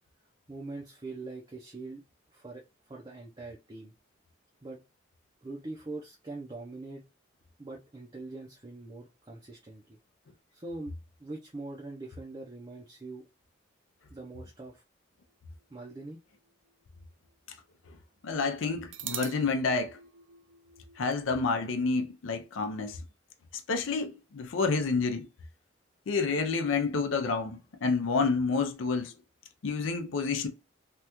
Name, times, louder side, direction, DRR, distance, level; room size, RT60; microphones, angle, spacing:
voice 1, 0.5-2.0 2.3-3.9 4.6-4.8 5.4-7.0 7.6-10.0 10.5-10.9 11.2-13.3 14.1-14.8 15.7-16.2, right 2 dB, 25° right, 0.5 m, -42 dB
sound 1, 15.6-17.3 17.6-17.7 18.9-21.1, right 10 dB, 80° right, 0.5 m, -44 dB
voice 2, 18.2-20.0 21.0-23.0 23.7-25.3 26.1-29.1 29.6-30.5, left 4 dB, 85° left, 0.5 m, -29 dB
3.3 x 2.3 x 2.9 m
head